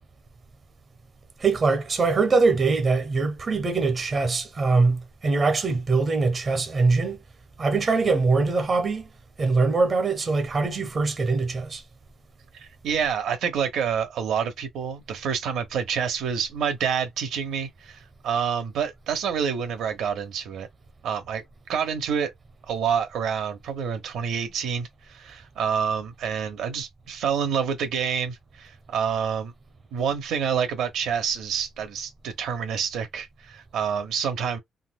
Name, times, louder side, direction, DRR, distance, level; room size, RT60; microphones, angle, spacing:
voice 1, 1.4-7.2 7.6-9.1 9.4-11.8, right 4 dB, 35° right, 0.9 m, -22 dB
voice 2, 12.5-20.7 21.0-21.4 21.7-22.3 22.7-29.5 29.9-34.6, right 7 dB, 80° right, 1.0 m, -28 dB
3.8 x 2.3 x 2.2 m
cardioid pair, 90°, 0 cm